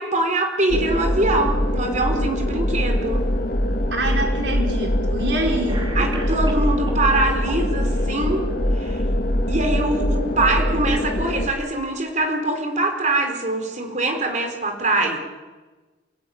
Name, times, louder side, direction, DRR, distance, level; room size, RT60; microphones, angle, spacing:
voice 1, 0.0-3.2 5.9-8.4 8.8-9.0 9.5-15.2, right 2 dB, 40° right, 4 dB, 4.3 m, -23 dB
sound 1, 0.7-11.5, left 1 dB, 55° left, 2.5 m, -23 dB
voice 2, 3.9-6.0, right 1 dB, 75° right, 1 dB, 5.0 m, -26 dB
Cough, 5.1-5.2 5.7-7.1 7.5-8.1, right 1 dB, 25° right, 3.2 m, -35 dB
28.0 x 18.5 x 9.4 m, 1.3 s
head